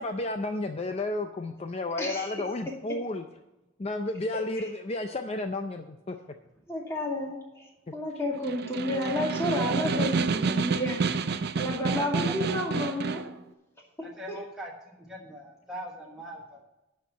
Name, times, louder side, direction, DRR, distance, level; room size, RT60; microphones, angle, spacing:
voice 1, 0.0-3.2 3.8-6.2, left 2 dB, 30° left, 6 dB, 0.5 m, -32 dB
voice 2, 2.0-2.4 4.3-4.7 6.7-7.7 7.9-11.0 11.6-13.2 14.3-14.4, left 1 dB, 15° left, -2 dB, 2.3 m, -31 dB
Snare drum, 8.3-13.3, right 4 dB, 55° right, 0.5 m, -29 dB
voice 3, 11.9-12.6 14.0-16.6, right 1 dB, 5° right, -3 dB, 1.2 m, -42 dB
11.5 x 4.4 x 8.2 m, 0.96 s
head